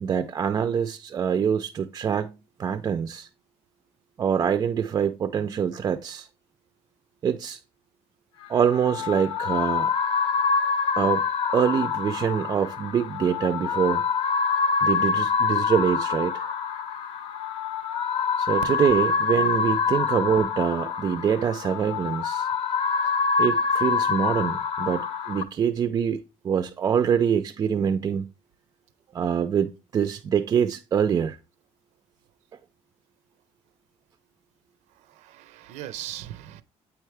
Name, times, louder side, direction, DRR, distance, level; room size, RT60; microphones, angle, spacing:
voice 1, 0.0-3.3 4.2-6.3 7.2-7.6 8.5-9.9 11.0-11.2 11.5-14.1 14.8-16.5 18.4-22.5 23.4-28.3 29.1-31.4, right 7 dB, 30° right, 0.3 m, -25 dB
sound 1, 8.4-25.4, left 5 dB, 50° left, 0.6 m, -26 dB
voice 2, 34.9-36.6, right 13 dB, 85° right, 0.5 m, -39 dB
8.5 x 4.5 x 3.3 m
cardioid pair, 175°, 12 cm